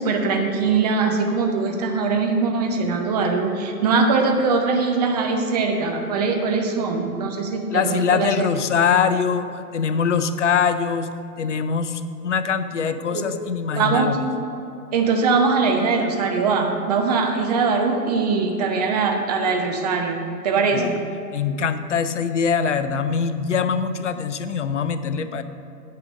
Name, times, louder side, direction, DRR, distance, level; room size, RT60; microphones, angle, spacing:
voice 1, 0.0-8.5 13.1-13.2 13.8-14.2 14.9-21.0, right 4 dB, 25° right, 3 dB, 0.8 m, -21 dB
voice 2, 7.7-11.1 11.4-14.2 20.7-21.0 21.3-25.4, left 6 dB, 50° left, 11 dB, 0.5 m, -23 dB
9.2 x 5.1 x 6.2 m, 2.8 s
figure-of-eight pair, 125°, 49 cm